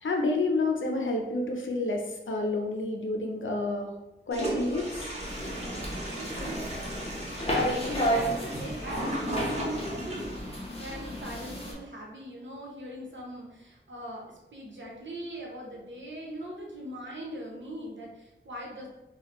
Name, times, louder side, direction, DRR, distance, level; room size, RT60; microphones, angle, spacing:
voice 1, 0.0-3.9 4.3-5.1, left 2 dB, 85° left, 2 dB, 0.6 m, -29 dB
Toilet flush, 4.3-10.4, right 1 dB, 35° right, 1.0 m, -36 dB
sound 1, 5.2-11.7, equal, 30° left, 0.9 m, -32 dB
voice 2, 8.0-18.9, right 1 dB, 70° right, -2 dB, 0.9 m, -41 dB
4.1 x 2.3 x 3.0 m, 0.96 s
wide cardioid pair, 80°, 20 cm